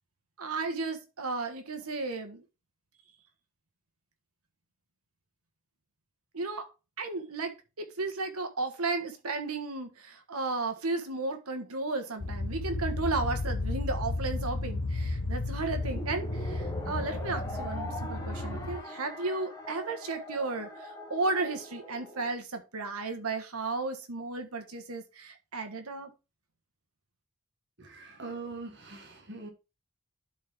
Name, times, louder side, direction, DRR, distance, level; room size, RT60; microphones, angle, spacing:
voice 1, 0.4-2.4 6.3-6.6 7.0-26.1, right 3 dB, 85° right, 1.5 m, -34 dB
sound 1, 12.2-18.8, left 2 dB, 90° left, 1.0 m, -33 dB
sound 2, 15.8-22.3, left 1 dB, 15° left, 1.7 m, -41 dB
voice 2, 27.8-29.5, right 3 dB, 50° right, 1.7 m, -42 dB
11.5 x 4.4 x 3.6 m
head